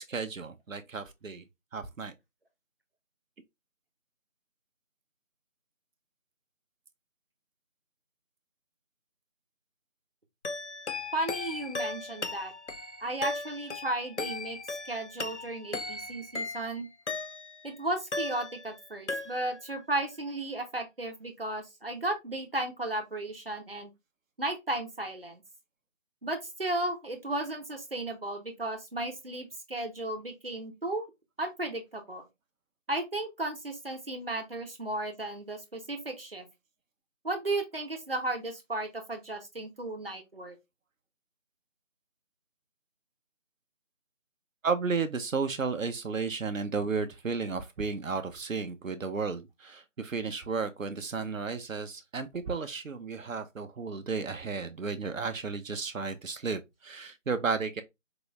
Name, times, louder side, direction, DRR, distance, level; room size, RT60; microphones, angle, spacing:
voice 1, 0.0-1.4 1.7-2.1 44.6-57.8, right 4 dB, 85° right, 0.7 m, -33 dB
sound 1, 10.4-17.7 18.1-18.8 19.1-19.7, left 3 dB, 65° left, 0.5 m, -37 dB
voice 2, 11.1-12.5 13.0-14.6 14.9-16.9 17.6-23.9 24.4-25.4 26.2-31.0 31.4-32.2 32.9-36.5 37.2-40.6, right 2 dB, 45° right, 0.8 m, -34 dB
4.5 x 2.0 x 3.0 m
figure-of-eight pair, 180°, 39 cm